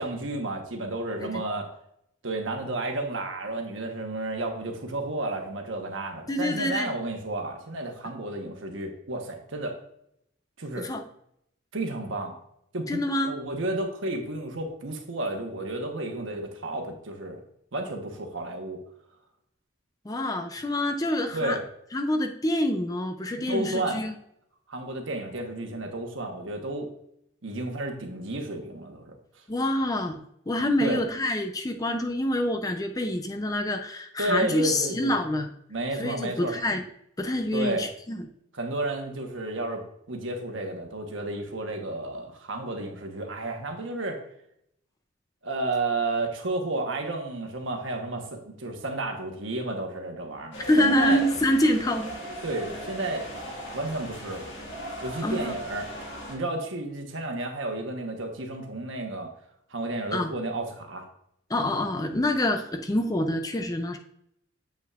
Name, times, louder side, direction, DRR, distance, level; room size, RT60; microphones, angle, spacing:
voice 1, 0.0-1.7 2.2-9.8 10.6-10.9 11.7-12.3 12.7-13.0 13.3-17.4 17.7-18.8 21.3-21.6 23.5-24.0 24.7-26.9 27.4-29.2 30.8-31.0 34.2-35.1 35.7-36.5 37.5-37.9 38.5-44.2 45.4-51.2 52.4-53.3 53.7-54.5 55.0-55.9 56.3-59.3 59.7-61.0, right 2 dB, 75° right, 3 dB, 1.1 m, -32 dB
voice 2, 6.3-7.0 10.8-11.0 12.9-13.4 20.1-21.6 21.9-24.1 29.5-30.2 30.5-35.5 36.0-36.8 37.2-38.2 50.6-52.1 55.2-55.5 60.1-60.3 61.5-64.0, left 1 dB, 15° left, 5 dB, 0.4 m, -26 dB
sound 1, 50.5-56.4, equal, 60° left, 1.8 m, -38 dB
7.9 x 5.5 x 2.4 m, 0.73 s
head